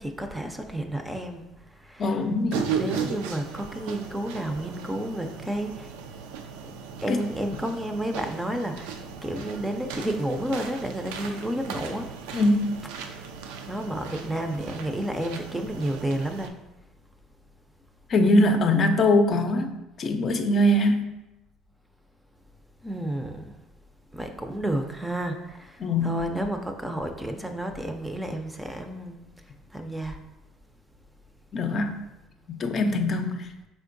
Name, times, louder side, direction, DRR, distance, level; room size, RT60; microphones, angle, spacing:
voice 1, 0.0-1.5 1.8-2.3 2.7-5.9 7.0-8.9 9.2-12.1 13.7-16.6 22.8-23.5 24.1-29.2 29.7-30.2, right 1 dB, 10° right, 5 dB, 0.5 m, -31 dB
voice 2, 2.0-2.7 7.1-7.2 12.3-12.8 18.1-21.1 25.8-26.2 31.5-32.0 32.5-33.5, left 1 dB, 45° left, 5 dB, 0.5 m, -22 dB
sound 1, 2.5-16.5, right 6 dB, 85° right, 0.4 m, -36 dB
4.3 x 3.6 x 2.6 m, 0.97 s
supercardioid pair, 80°, 0 cm